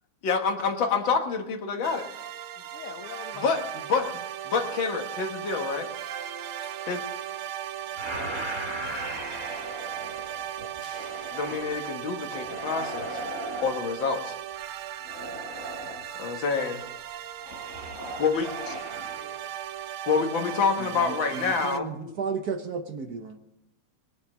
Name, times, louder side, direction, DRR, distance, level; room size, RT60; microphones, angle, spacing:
voice 1, 0.2-2.1 3.4-3.6 3.9-4.1 4.5-5.9 6.9-7.0 11.3-13.3 13.6-14.4 16.2-16.8 18.2-18.8 20.1-22.2, left 5 dB, 65° left, 5 dB, 2.1 m, -27 dB
sound 1, 1.8-21.8, right 10 dB, 85° right, 1.6 m, -37 dB
voice 2, 2.7-3.6 18.4-19.6, left 8 dB, 90° left, 6 dB, 2.1 m, -45 dB
sound 2, 8.0-11.8 12.3-13.7 15.0-16.1 17.4-19.2, right 1 dB, 35° right, 4.1 m, -37 dB
sound 3, 10.8-12.3, left 1 dB, 20° left, 4.2 m, -54 dB
voice 3, 20.8-23.4, right 5 dB, 55° right, 7 dB, 1.3 m, -34 dB
21.0 x 7.0 x 7.3 m, 0.90 s
omnidirectional pair, 2.3 m